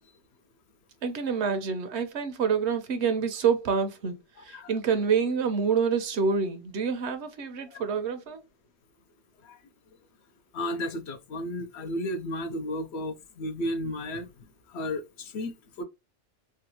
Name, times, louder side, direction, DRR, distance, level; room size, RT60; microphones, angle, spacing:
voice 1, 1.0-8.4, right 6 dB, 70° right, 1.0 m, -27 dB
voice 2, 10.5-14.3 14.7-15.8, left 1 dB, 70° left, 0.9 m, -33 dB
3.4 x 2.3 x 2.8 m
omnidirectional pair, 1.2 m